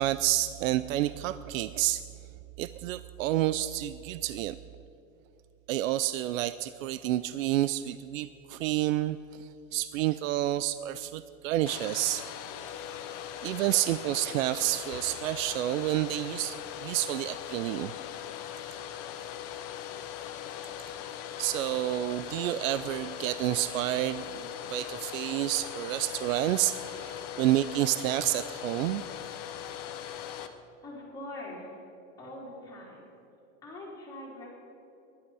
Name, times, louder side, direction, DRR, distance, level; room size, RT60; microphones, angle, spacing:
voice 1, 0.0-2.0 2.6-4.5 5.7-12.2 13.4-17.9 21.4-29.0, right 14 dB, 80° right, 14 dB, 0.6 m, -29 dB
Domestic sounds home sounds, 11.6-30.5, left 10 dB, 30° left, 0.8 m, -40 dB
voice 2, 30.8-31.7 32.2-33.1 33.6-34.5, left 1 dB, 10° left, -5 dB, 3.6 m, -43 dB
25.5 x 11.5 x 4.8 m, 2.8 s
supercardioid pair, 180°, 40 cm